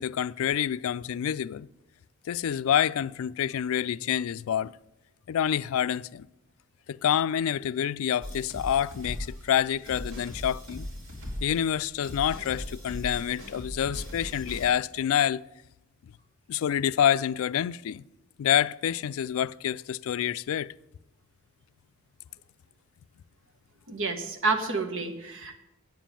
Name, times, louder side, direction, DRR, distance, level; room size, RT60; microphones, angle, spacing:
voice 1, 0.0-1.7 2.3-4.7 5.3-6.3 6.9-10.9 11.4-15.4 16.5-18.0 18.4-20.7, left 9 dB, 70° left, 0.3 m, -27 dB
sound 1, 8.2-14.7, left 1 dB, 90° right, 3.0 m, -39 dB
voice 2, 23.9-25.6, right 3 dB, 65° right, 1.4 m, -29 dB
9.1 x 7.2 x 7.4 m
head